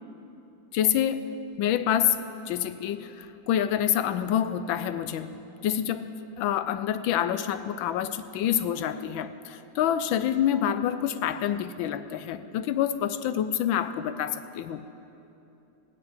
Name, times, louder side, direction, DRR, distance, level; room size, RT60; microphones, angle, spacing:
voice 1, 0.7-14.9, left 10 dB, 80° left, 12 dB, 1.3 m, -27 dB
16.5 x 9.4 x 8.7 m, 2.9 s
omnidirectional pair, 2.1 m